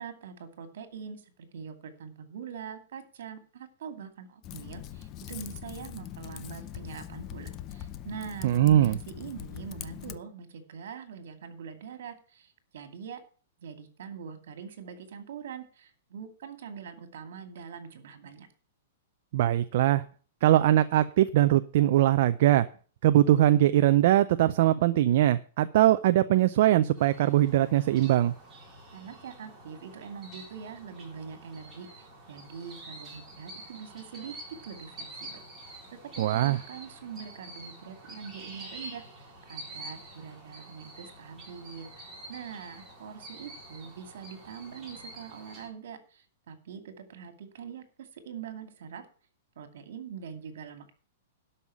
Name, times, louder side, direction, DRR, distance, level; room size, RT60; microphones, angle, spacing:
voice 1, 0.0-13.2 13.6-18.5 28.9-34.3 34.6-49.0 49.6-50.9, right 7 dB, 60° right, 8 dB, 2.4 m, -43 dB
Typing, 4.4-10.2, left 11 dB, 20° left, 0.6 m, -42 dB
voice 2, 8.4-9.0 19.3-20.0 20.4-22.7 23.0-28.3 36.2-36.6, right 13 dB, 45° right, 10 dB, 0.5 m, -21 dB
sound 1, 26.9-45.7, right 1 dB, 10° right, 3.9 m, -47 dB
12.5 x 5.6 x 8.4 m, 0.40 s
hypercardioid pair, 175°, 0 cm